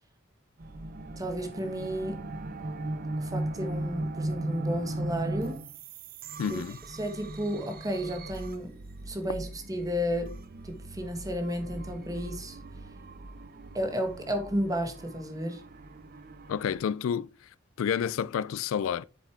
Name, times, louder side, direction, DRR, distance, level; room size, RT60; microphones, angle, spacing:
sound 1, 0.6-16.8, right 2 dB, 45° right, 0.8 m, -38 dB
voice 1, 1.2-2.2 3.2-5.6 6.5-6.6 7.0-8.8 9.1-10.4 10.6-12.6 13.7-15.6, equal, 15° right, 1.4 m, -32 dB
voice 2, 6.4-6.8 16.5-17.5 17.8-19.0, left 8 dB, 70° left, 0.3 m, -30 dB
8.1 x 6.5 x 3.3 m
head